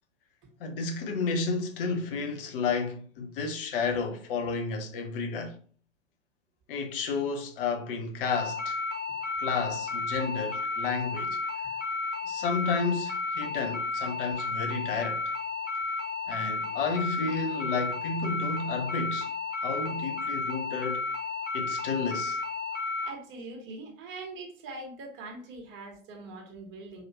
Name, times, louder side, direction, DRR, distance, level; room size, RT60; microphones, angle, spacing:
voice 1, 0.6-5.6 6.7-8.8 9.4-11.4 12.2-15.2 16.3-19.3 19.6-21.1 21.5-22.4, left 4 dB, 45° left, 0.8 m, -31 dB
sound 1, 8.3-23.1, left 4 dB, 70° left, 1.4 m, -33 dB
voice 2, 23.0-27.0, right 2 dB, 30° right, 1.3 m, -42 dB
4.0 x 3.0 x 2.9 m
figure-of-eight pair, 100°, 39 cm